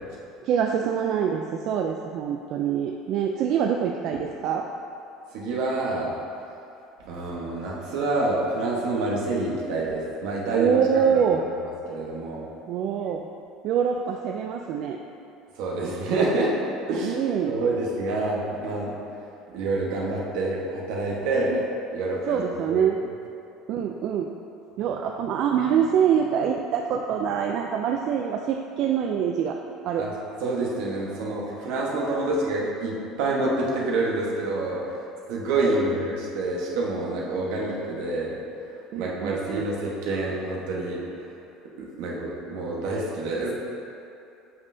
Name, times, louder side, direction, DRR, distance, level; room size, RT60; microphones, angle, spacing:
voice 1, 0.4-4.7 10.5-11.5 12.7-13.3 13.6-15.0 17.0-17.6 21.5-21.6 22.3-23.0 23.7-24.3 24.8-29.6 29.8-30.1 35.6-35.9 38.9-39.6, right 8 dB, 55° right, 2 dB, 0.3 m, -25 dB
voice 2, 5.3-6.2 7.0-10.7 11.1-11.4 11.9-12.5 15.6-16.5 16.9-17.2 17.5-18.9 19.5-21.5 21.9-22.8 30.0-30.1 30.4-34.9 35.3-38.4 38.9-41.0 41.8-43.5, right 2 dB, 75° right, -3 dB, 1.2 m, -27 dB
7.9 x 5.4 x 2.7 m, 2.7 s
cardioid pair, 140°, 0 cm